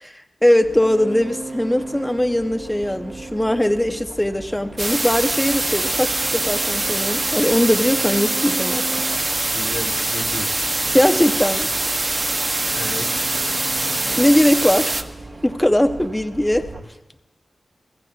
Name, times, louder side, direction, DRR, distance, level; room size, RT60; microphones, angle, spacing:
voice 1, 0.0-8.8 10.9-11.7 14.2-15.1 15.4-16.7, left 1 dB, 10° left, 8 dB, 0.6 m, -20 dB
sound 1, 0.6-16.8, right 2 dB, 70° right, 2.1 m, -36 dB
sound 2, 4.8-15.0, right 2 dB, 30° right, 0.6 m, -23 dB
voice 2, 9.5-10.6 12.4-13.4, left 3 dB, 75° left, 3 dB, 1.1 m, -34 dB
27.0 x 15.0 x 2.3 m, 1.0 s
wide cardioid pair, 75°, 0 cm